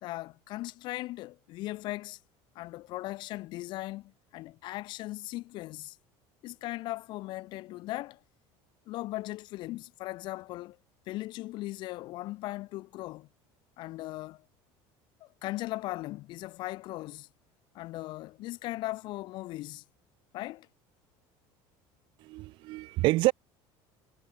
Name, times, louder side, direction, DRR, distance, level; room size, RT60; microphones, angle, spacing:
voice 1, 0.0-2.2 2.5-6.0 6.4-8.2 8.9-10.8 11.1-13.3 13.8-14.4 15.2-17.3 17.7-19.8 20.3-20.7, left 18 dB, 45° left, 2.4 m, -38 dB
voice 2, 22.2-23.3, right 19 dB, 50° right, 4.7 m, -27 dB
cardioid pair, 175°, 11 cm